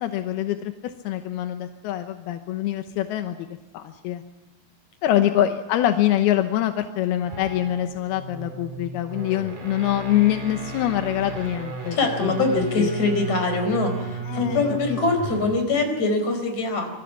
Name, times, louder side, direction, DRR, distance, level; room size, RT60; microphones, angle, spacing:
voice 1, 0.0-3.5 3.7-4.2 5.0-12.9 14.3-14.6 14.9-15.0, left 12 dB, 75° left, 7 dB, 2.5 m, -25 dB
sound 1, 7.1-15.6, right 3 dB, 40° right, 5.6 m, -34 dB
voice 2, 11.9-16.9, left 3 dB, 40° left, 5 dB, 5.5 m, -23 dB
26.0 x 23.0 x 5.8 m, 1.1 s
omnidirectional pair, 5.4 m